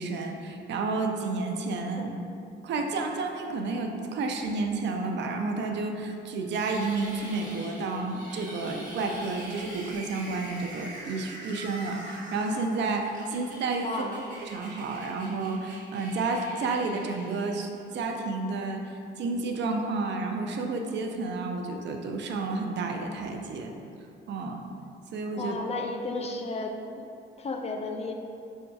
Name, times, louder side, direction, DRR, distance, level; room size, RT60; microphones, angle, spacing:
voice 1, 0.0-2.2 2.6-14.1 14.4-23.7 24.3-24.6 25.1-25.6, right 3 dB, 65° right, 4 dB, 0.4 m, -31 dB
sound 1, 6.5-17.8, right 1 dB, 40° right, 1.0 m, -44 dB
voice 2, 13.8-14.3 25.4-26.7 27.4-28.1, left 3 dB, 35° left, 3 dB, 0.3 m, -33 dB
5.4 x 2.7 x 2.3 m, 2.5 s
cardioid pair, 90°, 20 cm